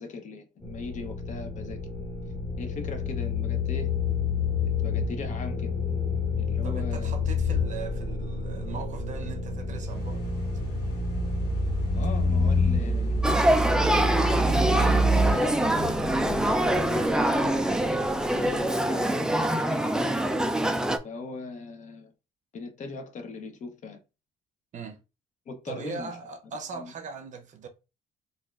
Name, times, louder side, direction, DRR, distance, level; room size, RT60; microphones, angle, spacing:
voice 1, 0.0-1.8 2.6-3.9 4.6-5.7 6.4-7.1 11.9-13.2 13.6-15.8 16.4-18.0 18.3-20.1 21.0-22.1 22.5-24.0 25.5-26.2 26.7-26.9, left 3 dB, 45° left, 0.7 m, -39 dB
sound 1, 0.6-16.8, left 2 dB, 15° left, 0.9 m, -28 dB
voice 2, 6.6-10.3 24.7-25.0 25.7-27.7, right 5 dB, 45° right, 0.7 m, -40 dB
sound 2, 9.9-18.7, left 2 dB, 75° left, 1.2 m, -46 dB
Male speech man speaking / Child speech kid speaking / Conversation, 13.2-21.0, right 1 dB, 5° right, 0.3 m, -25 dB
4.0 x 2.4 x 2.3 m
cardioid pair, 110°, 17 cm